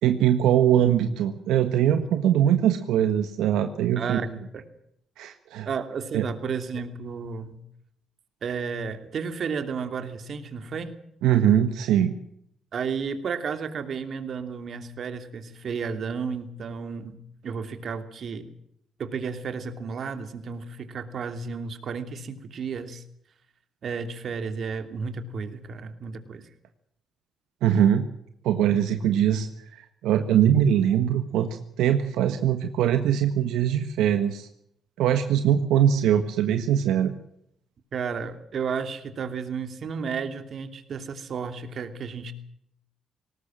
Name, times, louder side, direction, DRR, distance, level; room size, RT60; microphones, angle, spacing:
voice 1, 0.0-4.2 5.2-5.7 6.1-6.2 11.2-12.1 27.6-28.0 28.4-34.5 35.0-37.1, right 10 dB, 90° right, 7 dB, 1.5 m, -22 dB
voice 2, 4.0-4.6 5.6-7.6 8.4-10.9 12.7-17.2 17.4-18.5 19.0-23.0 23.8-26.5 37.9-42.3, right 5 dB, 55° right, 9 dB, 2.9 m, -32 dB
19.5 x 19.0 x 7.6 m, 0.73 s
cardioid pair, 90°, 0 cm